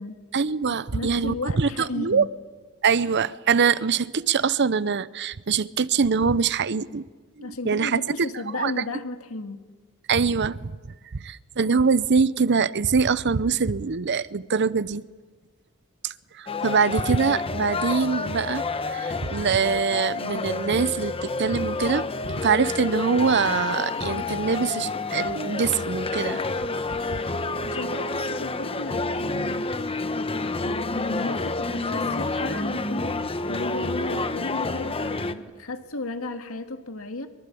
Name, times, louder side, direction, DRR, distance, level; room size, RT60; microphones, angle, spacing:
voice 1, 0.3-2.3 2.8-7.1 7.4-8.0 8.5-8.7 10.1-10.7 11.2-15.0 16.0-26.4, right 5 dB, 55° right, 0.7 m, -24 dB
voice 2, 0.9-2.3 7.4-9.6 27.6-29.7 30.1-30.2 30.6-33.1 33.5-37.3, left 2 dB, 80° left, 2.0 m, -34 dB
sound 1, 16.5-35.3, left 3 dB, 25° left, 1.0 m, -29 dB
23.5 x 23.0 x 8.5 m
head